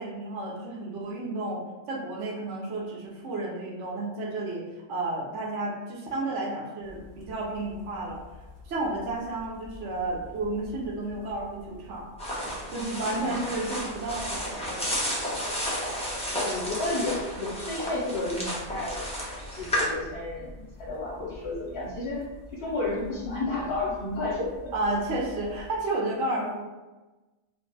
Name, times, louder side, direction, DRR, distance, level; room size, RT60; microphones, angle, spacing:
voice 1, 0.0-8.2 8.7-12.1 12.7-15.0 24.7-26.6, right 2 dB, 80° right, -2 dB, 1.1 m, -32 dB
sound 1, 6.8-25.7, left 1 dB, 35° right, 1.0 m, -48 dB
sound 2, 12.2-19.9, equal, 5° left, 0.5 m, -32 dB
voice 2, 13.2-13.5 16.3-19.0 19.6-22.3 22.5-24.7, left 2 dB, 60° left, -5 dB, 0.8 m, -32 dB
2.5 x 2.4 x 3.9 m, 1.2 s
omnidirectional pair, 1.2 m